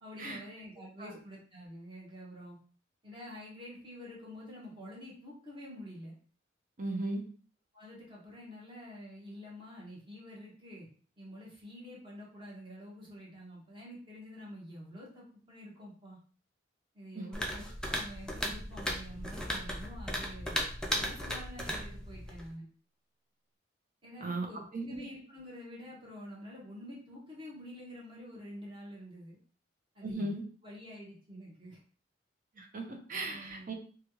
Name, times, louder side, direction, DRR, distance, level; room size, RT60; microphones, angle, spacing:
voice 1, 0.0-2.6 3.0-6.1 7.7-10.9 11.2-16.2 16.9-20.6 21.0-22.6 24.0-29.4 29.9-30.4 30.6-31.8 33.2-33.7, equal, 25° right, -4 dB, 1.2 m, -48 dB
voice 2, 6.8-7.2 17.1-17.4 24.2-24.5 24.7-25.0 30.0-30.4 32.6-33.7, right 2 dB, 45° right, 2 dB, 0.7 m, -37 dB
sound 1, 17.3-22.5, equal, 5° left, 0.5 m, -36 dB
3.2 x 2.3 x 2.9 m, 0.42 s
head